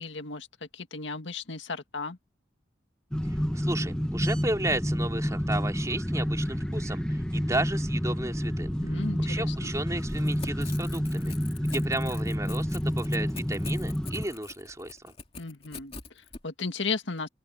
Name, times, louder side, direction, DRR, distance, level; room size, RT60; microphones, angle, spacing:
voice 1, 0.0-2.2 8.8-9.7 15.4-17.3, left 4 dB, 80° left, 1.9 m, -35 dB
sound 1, 3.1-14.3, equal, 5° left, 1.0 m, -29 dB
voice 2, 3.5-11.3 11.6-15.1, right 2 dB, 15° right, 3.1 m, -33 dB
Crackle / Tearing, 10.1-16.4, left 5 dB, 30° left, 2.5 m, -45 dB
open air
head